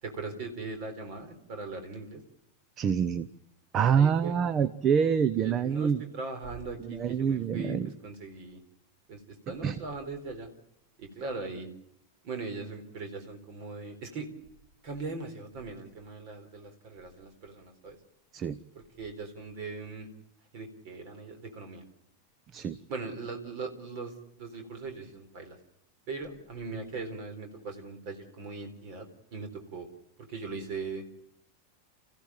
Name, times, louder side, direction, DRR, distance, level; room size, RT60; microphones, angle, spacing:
voice 1, 0.0-2.2 3.9-4.3 5.4-7.8 8.0-8.6 9.1-10.5 11.0-11.7 12.2-14.3 14.8-18.0 18.7-20.1 20.5-21.8 22.9-25.6 26.1-29.9 30.2-31.0, right 3 dB, 45° right, 7 dB, 4.1 m, -40 dB
voice 2, 2.8-3.3 3.7-6.0 6.9-7.9 9.6-9.8 18.3-18.6 22.5-22.8, right 7 dB, 30° right, 14 dB, 0.9 m, -26 dB
29.0 x 15.5 x 9.0 m, 0.80 s
figure-of-eight pair, 90°, 0 cm